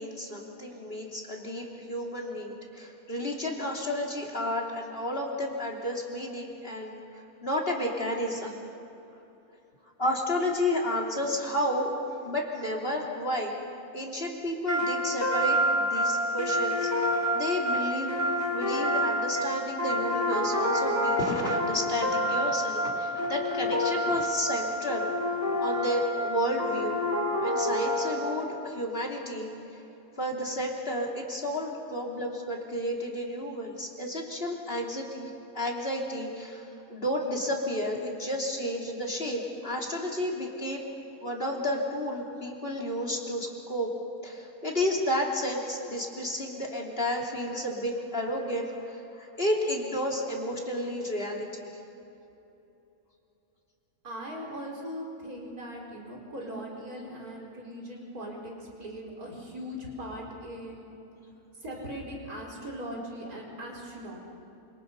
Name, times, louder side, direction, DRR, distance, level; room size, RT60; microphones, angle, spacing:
voice 1, 0.0-8.6 10.0-11.9 12.2-13.6 13.9-16.9 17.3-18.2 18.5-25.1 25.6-26.9 27.4-29.8 30.2-40.8 41.2-43.9 44.2-51.7, left 1 dB, 40° left, -1 dB, 3.5 m, -31 dB
sound 1, 14.7-28.5, equal, 10° right, 3.3 m, -28 dB
voice 2, 54.0-60.9 61.6-64.2, equal, 85° right, -1 dB, 5.1 m, -39 dB
28.0 x 27.0 x 5.5 m, 3.0 s
omnidirectional pair, 1.5 m